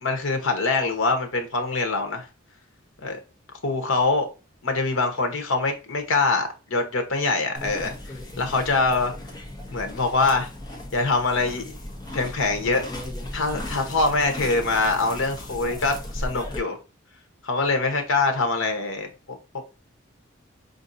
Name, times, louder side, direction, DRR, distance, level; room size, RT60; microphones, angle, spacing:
voice 1, 0.0-2.3 3.0-3.2 3.6-4.3 4.6-9.1 9.7-10.5 10.9-11.7 12.1-12.9 13.3-16.8 17.4-19.4, left 3 dB, 80° left, 0.9 m, -24 dB
sound 1, 7.5-16.6, left 1 dB, 20° left, 0.7 m, -36 dB
5.1 x 2.6 x 2.6 m
head